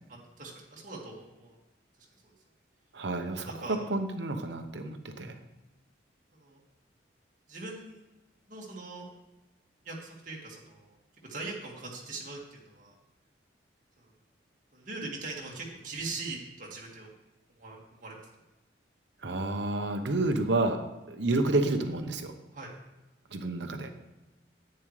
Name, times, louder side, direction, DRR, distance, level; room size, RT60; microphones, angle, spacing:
voice 1, 0.1-1.6 2.0-2.3 3.4-4.0 6.3-6.6 7.5-8.1 8.5-9.1 9.8-11.0 11.2-12.9 14.0-14.1 14.7-17.1 17.6-18.3 22.5-22.7, right 3 dB, 45° right, -3 dB, 2.1 m, -41 dB
voice 2, 2.9-5.4 19.2-22.3 23.3-23.9, right 2 dB, 70° right, 6 dB, 0.9 m, -30 dB
10.5 x 8.7 x 3.3 m, 1.0 s
head